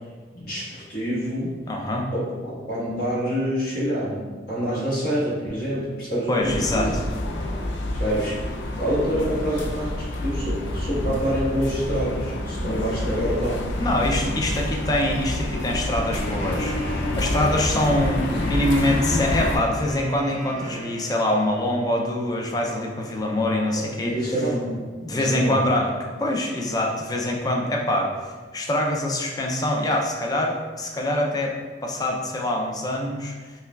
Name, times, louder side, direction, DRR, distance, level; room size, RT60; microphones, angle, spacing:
voice 1, 0.3-1.5 2.1-6.9 7.9-13.6 18.3-18.4 23.8-25.7, equal, 60° left, -7 dB, 1.3 m, -27 dB
voice 2, 1.7-2.1 6.3-6.9 13.8-24.3 25.0-33.5, left 1 dB, 20° left, 0 dB, 0.4 m, -24 dB
sound 1, 6.4-19.6, left 1 dB, 90° left, 0.4 m, -27 dB
Wind instrument woodwind instrument, 16.0-21.9, right 2 dB, 40° right, 0.5 m, -39 dB
5.5 x 2.2 x 2.3 m, 1.4 s
head